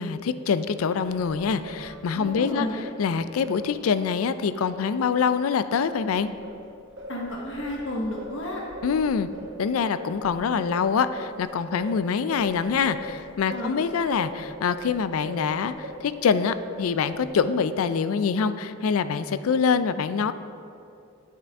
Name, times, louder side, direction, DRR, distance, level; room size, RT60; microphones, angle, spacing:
voice 1, 0.0-2.7 3.0-6.3 8.8-9.3 9.6-20.3, left 6 dB, 80° left, 13 dB, 0.4 m, -25 dB
Singing, 1.0-5.4 5.8-16.1 16.4-17.4, right 1 dB, 60° right, 1.2 m, -41 dB
voice 2, 2.1-2.8 7.1-8.6 13.5-13.8, equal, 65° left, -1 dB, 1.1 m, -31 dB
9.4 x 8.7 x 3.5 m, 2.6 s
head